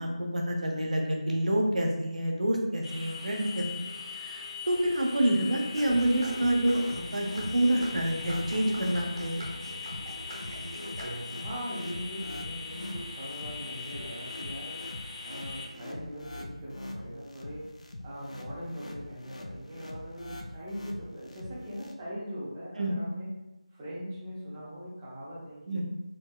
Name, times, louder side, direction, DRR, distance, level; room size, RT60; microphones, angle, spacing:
voice 1, 0.0-3.7 4.1-9.5 22.8-23.0 25.7-25.8, right 1 dB, 75° right, 0 dB, 0.7 m, -28 dB
sound 1, 2.8-15.6, left 4 dB, 50° left, 1.1 m, -41 dB
sound 2, 5.7-11.6, right 1 dB, 45° right, 0.8 m, -42 dB
sound 3, 5.9-21.9, left 1 dB, 65° left, 0.4 m, -43 dB
voice 2, 11.0-14.8 15.2-17.7 18.0-23.3 23.7-25.8, equal, 10° right, -8 dB, 0.4 m, -41 dB
4.3 x 2.0 x 2.2 m, 0.99 s
figure-of-eight pair, 175°, 4 cm